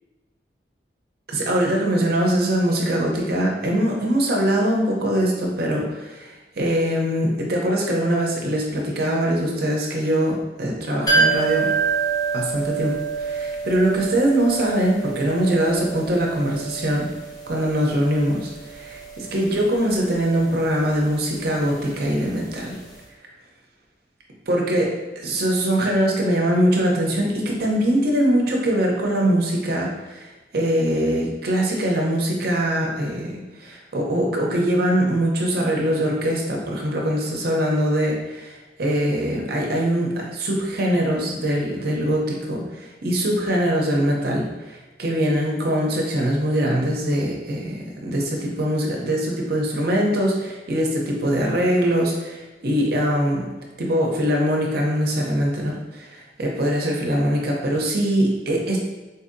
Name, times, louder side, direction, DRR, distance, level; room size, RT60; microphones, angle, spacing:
voice 1, 1.3-11.7 12.3-17.1 17.5-22.8 24.5-24.9 25.2-53.5 53.8-58.8, right 1 dB, 60° right, -1 dB, 0.7 m, -22 dB
sound 1, 11.1-22.7 22.9-23.0, right 5 dB, 20° left, 0.8 m, -28 dB
4.0 x 2.7 x 2.6 m, 1.2 s
head